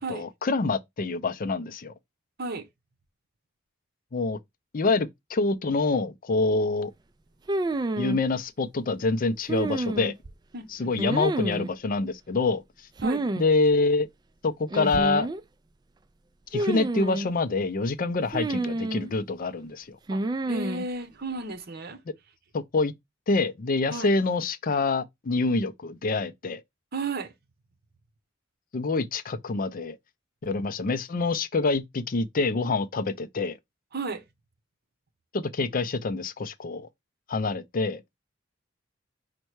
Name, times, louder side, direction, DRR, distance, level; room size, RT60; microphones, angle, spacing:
voice 1, 0.1-1.9 4.1-4.4 4.7-6.9 8.0-10.1 10.7-12.6 13.4-14.1 14.4-15.3 16.5-20.0 22.5-22.9 23.3-26.6 28.7-30.0 30.4-33.6 35.3-36.9 37.3-38.0, left 3 dB, 45° left, 0.5 m, -26 dB
sound 1, 7.5-8.2 9.5-10.3 11.0-11.7 13.0-13.5 13.7-13.8 14.7-15.4 16.5-17.3 18.3-19.1 20.1-20.8, right 2 dB, 20° right, 0.3 m, -29 dB
voice 2, 10.5-11.2 13.0-13.2 20.1-20.2 20.5-22.0 23.9-24.1 26.9-27.3 33.9-34.2, right 3 dB, 55° right, 0.8 m, -33 dB
5.4 x 2.2 x 4.5 m
head